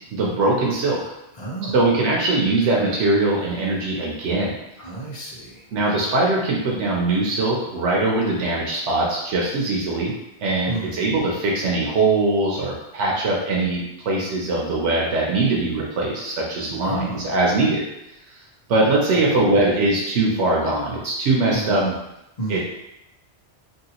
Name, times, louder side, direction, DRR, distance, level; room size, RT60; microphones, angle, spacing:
voice 1, 0.1-1.0 1.7-4.6 5.7-10.1 10.4-17.8 18.7-21.8 22.5-22.6, right 2 dB, 90° right, -3 dB, 1.0 m, -21 dB
voice 2, 1.3-1.8 4.8-5.6 10.6-11.1 16.7-17.3 19.4-19.6 21.5-22.0 22.4-22.6, right 3 dB, 40° left, -7 dB, 1.1 m, -31 dB
2.9 x 2.7 x 2.9 m, 0.86 s
omnidirectional pair, 1.2 m